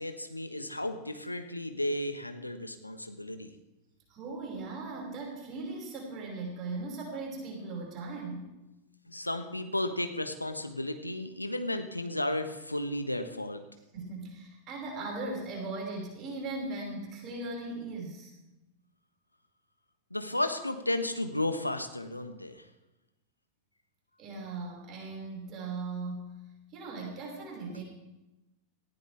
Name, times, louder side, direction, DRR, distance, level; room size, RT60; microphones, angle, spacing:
voice 1, 0.0-3.5 9.1-13.6 20.1-22.6 27.7-27.8, left 1 dB, 85° left, 7 dB, 1.3 m, -33 dB
voice 2, 4.1-8.5 13.9-18.3 24.2-26.3 26.7-27.8, right 3 dB, 35° right, -1 dB, 5.6 m, -38 dB
19.0 x 15.0 x 3.5 m, 0.99 s
figure-of-eight pair, 90°, 0 cm